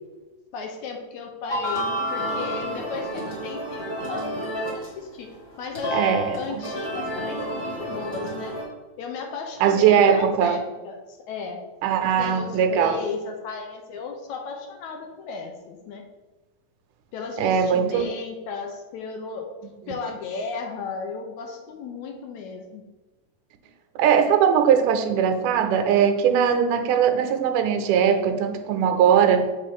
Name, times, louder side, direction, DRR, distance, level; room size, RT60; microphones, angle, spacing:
voice 1, 0.5-8.6 9.0-11.6 12.0-16.0 17.1-19.5 19.9-22.8, left 4 dB, 75° left, 3 dB, 1.8 m, -35 dB
sound 1, 1.5-5.0 5.3-8.6, equal, 25° left, 1.1 m, -30 dB
voice 2, 5.9-6.6 9.6-10.6 11.8-13.0 17.4-18.0 24.0-29.5, right 8 dB, 80° right, 7 dB, 2.1 m, -20 dB
6.7 x 4.8 x 3.6 m, 1.2 s
omnidirectional pair, 3.7 m